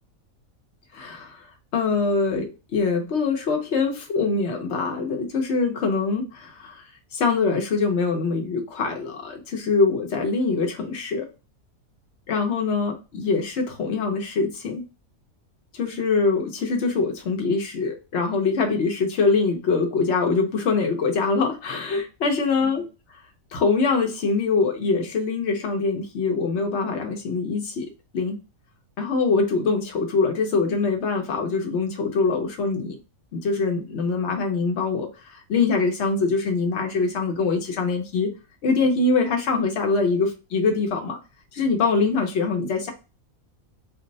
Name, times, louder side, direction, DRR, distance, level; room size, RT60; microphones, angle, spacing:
voice 1, 0.9-1.4 1.7-6.8 7.1-11.3 12.3-14.8 15.7-22.8 23.5-28.4 29.0-32.9 33.3-38.3 38.6-41.2 41.5-42.9, left 4 dB, 60° left, 3 dB, 0.9 m, -23 dB
2.6 x 2.1 x 3.8 m, 0.31 s
omnidirectional pair, 1.5 m